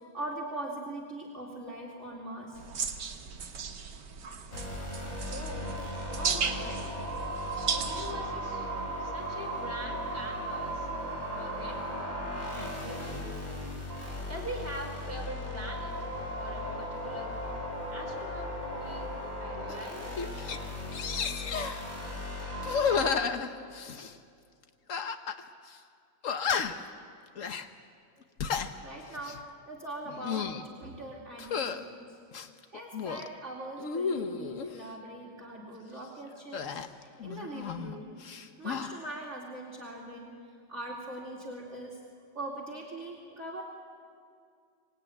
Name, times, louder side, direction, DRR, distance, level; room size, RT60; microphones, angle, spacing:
voice 1, 0.1-2.6 28.8-32.2 32.7-40.4 40.7-42.0 42.3-43.6, right 1 dB, 40° right, -3 dB, 2.8 m, -41 dB
sound 1, 2.6-8.1, right 6 dB, 75° right, 2.0 m, -36 dB
sound 2, 4.5-23.1, equal, 25° left, 3.6 m, -37 dB
voice 2, 5.3-5.7 6.1-7.0 7.7-8.7 9.0-10.9 11.4-11.9 12.4-13.4 14.3-15.9 16.4-17.3 17.9-18.5 18.8-19.1 19.4-20.1, right 1 dB, 10° right, -1 dB, 4.4 m, -42 dB
sound 3, 19.7-19.8 20.2-20.6 20.9-21.8 22.6-24.1 24.9-25.4 25.7-25.8 26.2-26.9 27.4-27.7 28.2-28.7 29.1-29.4 30.0-30.6 31.4-31.8 32.3-33.3 33.8-34.7 36.5-37.9 38.2-38.9, left 6 dB, 50° left, 1.3 m, -32 dB
26.0 x 19.5 x 9.2 m, 2.3 s
omnidirectional pair, 1.9 m